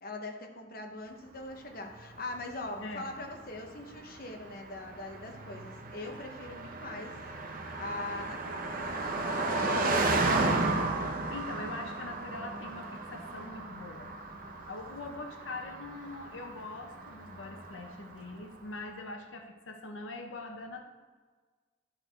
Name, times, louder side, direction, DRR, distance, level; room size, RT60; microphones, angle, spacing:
voice 1, 0.0-7.2 7.5-8.8 9.1-10.2 10.4-10.9, left 2 dB, 50° left, 3 dB, 0.9 m, -42 dB
Car passing by, 1.9-18.3, right 2 dB, 45° right, 0.8 m, -34 dB
voice 2, 9.5-10.1 11.3-14.1 14.7-20.9, left 3 dB, 85° left, 4 dB, 0.8 m, -43 dB
11.5 x 4.5 x 4.5 m, 1.4 s
head